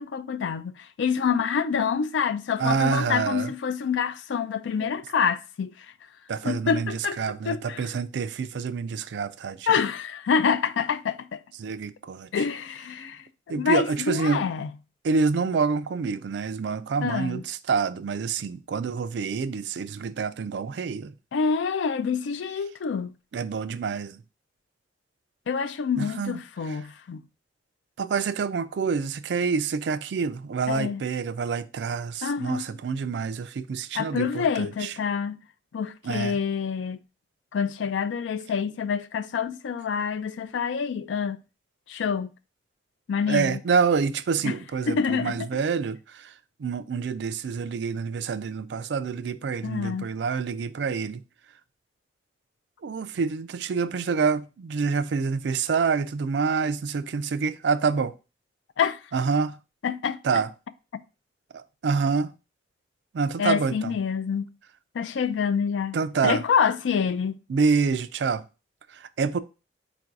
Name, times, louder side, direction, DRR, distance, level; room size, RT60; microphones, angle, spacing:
voice 1, 0.0-5.9 6.4-7.2 7.4-7.9 9.7-11.4 12.3-14.7 17.0-17.4 21.3-23.1 25.5-27.2 30.7-31.0 32.2-32.7 33.9-35.4 35.7-37.0 37.5-41.4 41.9-42.3 43.1-43.6 44.4-44.6 44.9-45.5 49.6-50.1 58.8-59.0 59.8-60.4 60.9-61.0 63.4-64.5 64.9-66.0 66.2-67.4, left 6 dB, 90° left, 0.4 m, -27 dB
voice 2, 2.6-3.5 4.8-4.9 6.3-9.7 11.6-12.3 13.5-14.5 15.0-21.1 23.3-24.2 26.0-26.4 28.0-34.9 36.0-36.4 43.3-46.3 46.6-51.2 52.8-58.1 59.1-59.6 60.2-60.5 61.5-62.3 63.1-63.9 65.9-66.4 67.5-68.5 68.9-69.4, right 5 dB, 75° right, 0.4 m, -27 dB
4.6 x 2.6 x 4.5 m
head